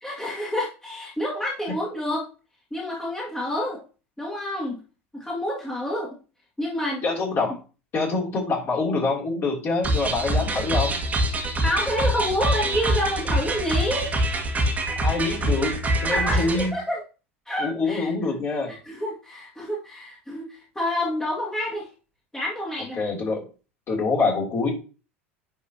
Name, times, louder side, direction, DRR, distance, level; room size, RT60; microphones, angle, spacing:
voice 1, 0.0-2.3 2.7-3.8 4.2-4.8 5.1-6.1 6.6-7.0 11.6-14.1 16.0-17.0 17.5-18.1 18.7-21.9 22.3-23.0, left 1 dB, 10° left, -4 dB, 2.0 m, -28 dB
voice 2, 7.0-7.6 7.9-11.0 15.0-16.7 17.6-18.7 23.0-23.4 23.9-24.7, left 3 dB, 35° left, -2 dB, 3.0 m, -25 dB
sound 1, 9.8-16.7, right 1 dB, 20° right, 1.7 m, -25 dB
10.0 x 4.3 x 2.8 m, 0.34 s
figure-of-eight pair, 75°, 7 cm